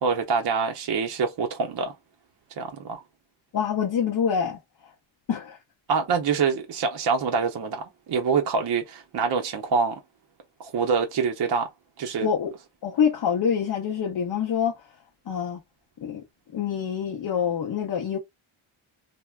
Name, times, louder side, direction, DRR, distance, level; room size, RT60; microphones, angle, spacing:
voice 1, 0.0-1.9 2.6-3.0 5.9-10.0 10.6-11.7 12.0-12.3, right 5 dB, 50° right, 0.6 m, -25 dB
voice 2, 3.5-4.6 5.3-5.6 12.2-12.6 12.8-14.8 15.3-15.6 16.0-16.2 16.5-18.2, left 7 dB, 50° left, 0.6 m, -26 dB
3.3 x 2.1 x 2.2 m
wide cardioid pair, 135°, 50 cm